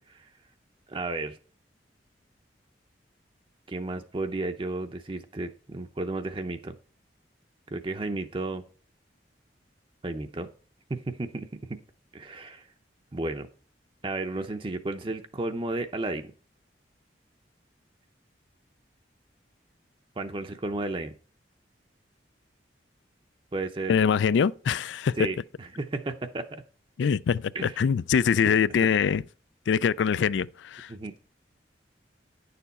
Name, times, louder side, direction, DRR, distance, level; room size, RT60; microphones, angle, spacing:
voice 1, 0.9-1.4 3.7-6.8 7.7-8.6 10.0-10.5 10.9-11.8 12.1-12.7 13.1-13.5 14.0-16.3 20.2-21.1 23.5-24.0 25.2-26.6 27.5-27.8 28.4-28.5 30.9-31.1, right 2 dB, 30° right, 0.6 m, -33 dB
voice 2, 23.9-25.3 27.0-29.2 29.7-30.9, left 7 dB, 75° left, 0.3 m, -24 dB
9.9 x 6.8 x 4.1 m
head